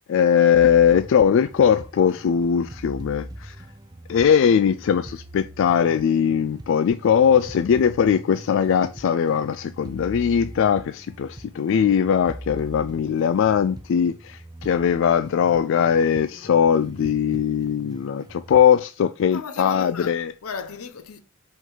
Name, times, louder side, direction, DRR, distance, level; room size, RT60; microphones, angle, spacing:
voice 1, 0.1-3.6 4.1-20.3, left 8 dB, 60° left, 0.3 m, -20 dB
sound 1, 0.5-18.7, right 1 dB, 20° right, 0.4 m, -42 dB
voice 2, 19.3-21.2, left 5 dB, 85° left, 0.8 m, -35 dB
5.3 x 3.9 x 4.8 m
head